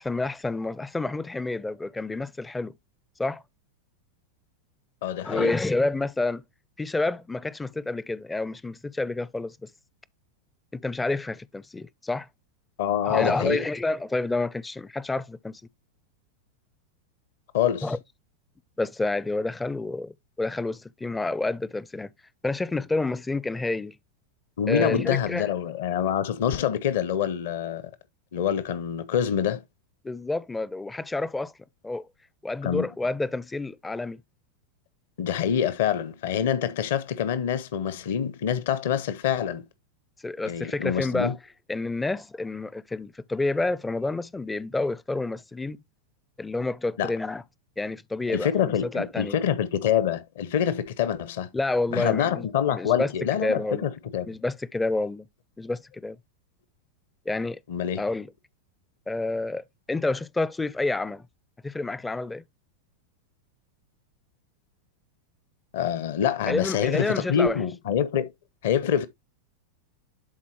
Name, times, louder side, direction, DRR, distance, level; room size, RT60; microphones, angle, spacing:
voice 1, 0.0-2.7 3.2-3.4 5.2-6.4 6.8-9.7 10.7-12.3 13.0-15.6 17.8-18.0 18.8-22.1 22.4-24.0 24.7-25.5 30.0-31.5 31.8-32.1 32.4-34.2 40.2-41.3 41.7-45.8 46.4-47.4 47.8-49.4 51.5-53.1 53.4-53.9 54.3-55.3 55.6-56.2 57.3-57.6 58.0-58.3 59.1-61.2 61.6-62.4 66.5-67.6, left 2 dB, 10° left, 0.4 m, -29 dB
voice 2, 5.0-5.5 12.8-13.7 17.5-17.9 24.6-27.8 28.3-29.6 32.6-32.9 35.2-39.6 40.4-41.4 47.0-47.1 48.3-51.5 51.9-54.4 57.7-58.0 65.7-68.3 68.6-69.1, left 9 dB, 55° left, 0.7 m, -26 dB
11.0 x 4.2 x 3.0 m
figure-of-eight pair, 90°, 0 cm